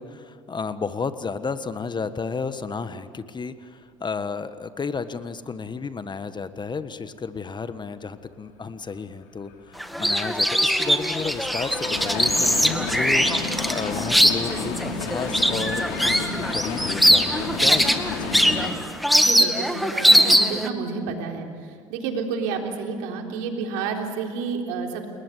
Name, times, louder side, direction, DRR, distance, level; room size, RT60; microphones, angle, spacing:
voice 1, 0.0-18.9, left 5 dB, 30° left, 12 dB, 1.4 m, -32 dB
sound 1, 9.4-18.7, left 4 dB, 70° left, 3.6 m, -32 dB
sound 2, 9.8-20.7, equal, ahead, 2.1 m, -21 dB
voice 2, 19.1-25.1, right 5 dB, 70° right, 2 dB, 3.7 m, -30 dB
29.5 x 19.5 x 8.3 m, 2.2 s
hypercardioid pair, 70°, 16 cm